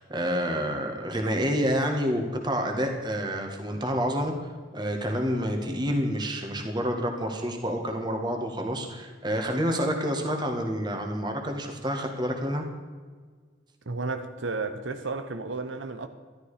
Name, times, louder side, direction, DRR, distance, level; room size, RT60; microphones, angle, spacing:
voice 1, 0.0-4.3 4.7-12.6, equal, 25° right, 1.9 m, -28 dB
voice 2, 13.9-16.1, right 3 dB, 90° right, 1.0 m, -32 dB
13.5 x 12.5 x 5.1 m
head